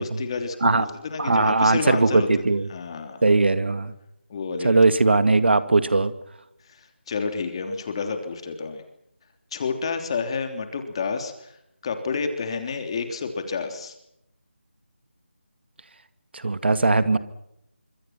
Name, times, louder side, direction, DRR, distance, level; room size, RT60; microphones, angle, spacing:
voice 1, 0.0-2.3 2.7-3.2 4.3-4.8 6.7-8.8 9.5-11.5 11.8-13.9, left 5 dB, 25° left, 6 dB, 3.3 m, -30 dB
voice 2, 1.2-2.7 3.2-3.9 4.6-6.1 16.3-17.2, right 3 dB, 60° right, 12 dB, 2.1 m, -19 dB
26.0 x 25.5 x 5.9 m, 0.80 s
figure-of-eight pair, 170°, 7 cm